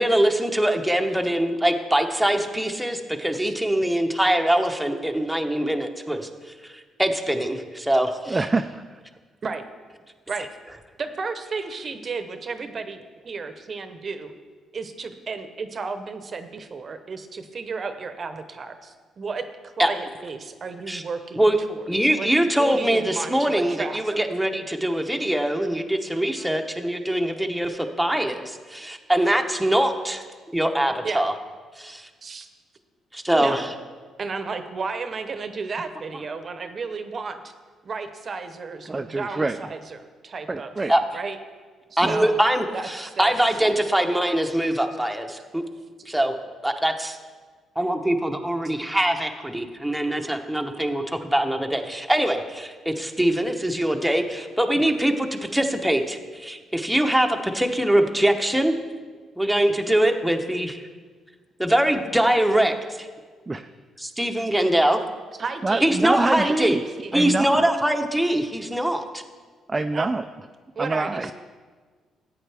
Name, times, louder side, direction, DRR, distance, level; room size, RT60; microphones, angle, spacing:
voice 1, 0.0-6.3 7.0-8.4 19.8-19.9 20.9-21.0 21.4-21.6 21.9-30.2 30.5-31.3 31.8-32.1 33.1-33.7 40.9-41.0 42.0-45.6 46.1-47.2 47.8-58.7 59.4-60.8 61.6-63.1 64.0-65.0 65.8-66.8 67.1-69.2, right 1 dB, ahead, 3 dB, 0.9 m, -23 dB
voice 2, 8.3-9.0 38.9-39.6 40.5-40.9 42.0-42.3 54.8-54.9 63.5-63.7 65.6-66.8 67.1-67.7 69.7-70.2 70.8-71.3, right 3 dB, 20° right, 7 dB, 0.3 m, -26 dB
voice 3, 11.0-14.3 14.7-21.4 21.7-22.3 22.6-24.2 26.1-26.5 31.0-31.3 32.2-32.5 33.3-33.6 34.2-37.4 37.8-40.7 41.1-41.4 41.9-42.3 42.7-43.3 65.4-66.0 66.4-67.3 69.9-70.1 70.7-71.3, right 4 dB, 45° right, 8 dB, 0.8 m, -33 dB
13.5 x 8.5 x 3.4 m, 1.5 s
cardioid pair, 90°, 0 cm